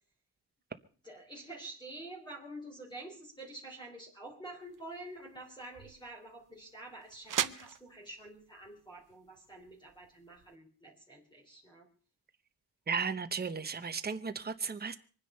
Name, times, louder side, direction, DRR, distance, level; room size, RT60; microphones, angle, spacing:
voice 1, 1.0-11.9, right 1 dB, 10° left, 3.3 m, -48 dB
sound 1, 4.6-10.5, right 10 dB, 50° right, 0.7 m, -42 dB
voice 2, 12.9-15.0, right 5 dB, 25° right, 0.9 m, -35 dB
24.0 x 9.9 x 5.5 m
wide cardioid pair, 165°, 39 cm